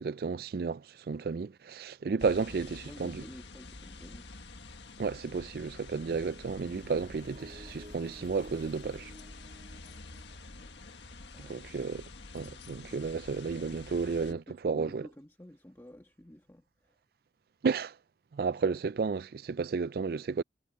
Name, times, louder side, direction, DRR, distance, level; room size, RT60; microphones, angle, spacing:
voice 1, 0.0-3.2 5.0-9.1 11.4-12.1 12.3-15.1 17.6-18.0 18.3-20.4, right 5 dB, 55° right, 0.4 m, -32 dB
sound 1, 2.2-14.3, left 3 dB, 80° left, 1.6 m, -48 dB
voice 2, 2.9-4.5 11.3-11.7 14.3-17.0, equal, 15° left, 1.4 m, -51 dB
sound 2, 5.9-11.7, equal, 35° right, 2.9 m, -55 dB
head